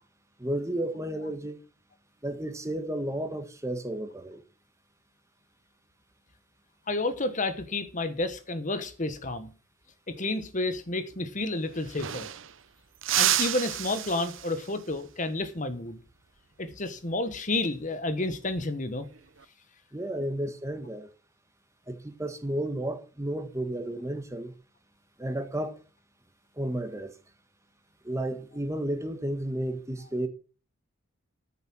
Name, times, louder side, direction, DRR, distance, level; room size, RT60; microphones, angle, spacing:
voice 1, 0.4-1.6 2.2-4.4 19.9-21.1 21.9-24.5 25.2-25.8 26.6-27.2 28.0-30.3, right 1 dB, 15° right, 1.4 m, -32 dB
voice 2, 6.9-9.5 10.1-12.3 13.1-16.0 16.6-19.1, left 2 dB, 40° left, 1.2 m, -30 dB
sound 1, 11.4-11.5 11.7-12.6 13.0-14.8 17.3-17.6 19.0-19.5, right 12 dB, 65° right, 0.8 m, -30 dB
13.5 x 7.1 x 6.1 m
head